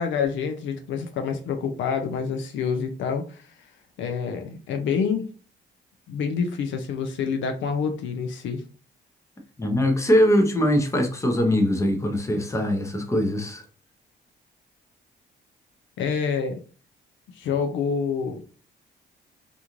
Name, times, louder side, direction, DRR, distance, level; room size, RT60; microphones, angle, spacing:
voice 1, 0.0-3.5 4.0-5.3 6.1-8.6 16.0-16.6 17.4-18.4, left 6 dB, 75° left, 0.5 m, -27 dB
voice 2, 9.6-13.6, equal, 15° left, 0.7 m, -22 dB
2.5 x 2.4 x 2.9 m
cardioid pair, 90°, 20 cm